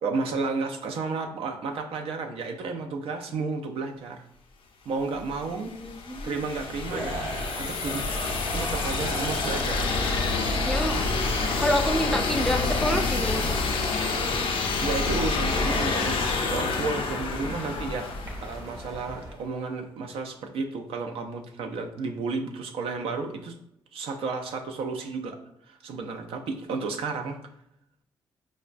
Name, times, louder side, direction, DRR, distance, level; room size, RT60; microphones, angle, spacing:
voice 1, 0.0-4.3 4.9-5.7 6.2-7.2 7.5-8.1 8.5-9.8 14.8-16.2 16.5-23.5 23.9-25.4 25.7-27.4, right 4 dB, 75° right, 4 dB, 0.4 m, -32 dB
sound 1, 5.2-19.0, left 3 dB, 60° left, 0.5 m, -28 dB
voice 2, 5.7-6.4 10.6-11.1 11.6-13.6, equal, 5° left, 4 dB, 0.4 m, -28 dB
sound 2, 6.9-14.1, right 2 dB, 60° right, 0.8 m, -38 dB
sound 3, 7.8-19.3, equal, 35° right, 0.6 m, -41 dB
4.5 x 2.1 x 2.4 m, 0.77 s
cardioid pair, 75°, 10 cm